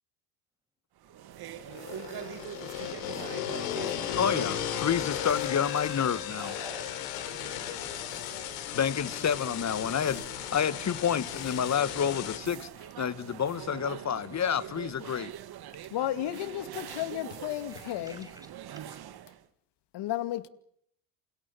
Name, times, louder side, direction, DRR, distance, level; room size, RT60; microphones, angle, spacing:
sound 1, 1.0-19.4, right 11 dB, 50° right, 2.2 m, -44 dB
sound 2, 1.6-12.4, left 12 dB, 80° left, 3.8 m, -35 dB
voice 1, 4.2-6.5 8.7-10.2 10.5-12.7 13.0-15.3, left 8 dB, 35° left, 1.8 m, -29 dB
voice 2, 6.4-7.0 17.7-19.0, right 1 dB, 10° right, 7.0 m, -49 dB
voice 3, 15.9-18.3 19.9-20.5, left 13 dB, 60° left, 2.4 m, -33 dB
29.0 x 28.0 x 5.8 m
hypercardioid pair, 75°, 47 cm